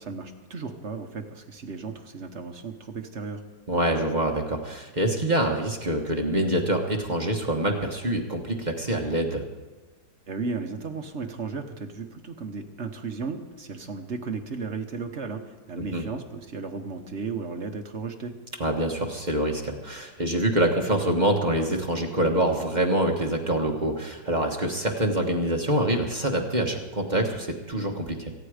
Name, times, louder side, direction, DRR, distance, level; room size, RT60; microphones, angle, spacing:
voice 1, 0.0-3.4 10.3-18.3, right 4 dB, 45° right, 5 dB, 1.2 m, -35 dB
voice 2, 3.7-9.4 15.8-16.0 18.6-28.3, right 1 dB, 30° right, 2 dB, 1.3 m, -25 dB
23.5 x 9.2 x 5.0 m, 1.2 s
omnidirectional pair, 1.8 m